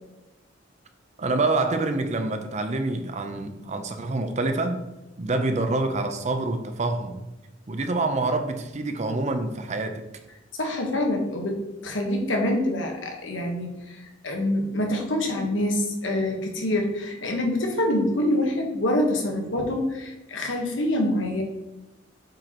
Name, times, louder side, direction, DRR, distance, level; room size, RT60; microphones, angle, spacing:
voice 1, 1.2-4.8 5.2-7.2 7.7-10.0, right 2 dB, 40° right, 0.6 m, -26 dB
voice 2, 10.6-21.4, left 1 dB, 90° left, 1.2 m, -26 dB
7.5 x 5.0 x 3.0 m
head